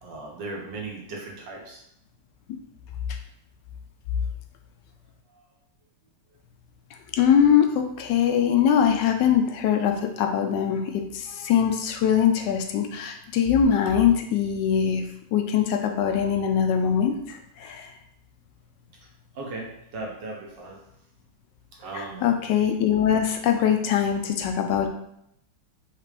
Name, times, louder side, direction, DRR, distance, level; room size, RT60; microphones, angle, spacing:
voice 1, 0.0-1.8 5.3-5.4 19.4-20.8 21.8-22.2, right 3 dB, 75° right, -1 dB, 1.7 m, -37 dB
voice 2, 7.1-15.0 15.3-17.9 21.9-24.9, left 8 dB, 75° left, 4 dB, 1.2 m, -22 dB
5.0 x 3.2 x 3.3 m, 0.74 s
omnidirectional pair, 2.0 m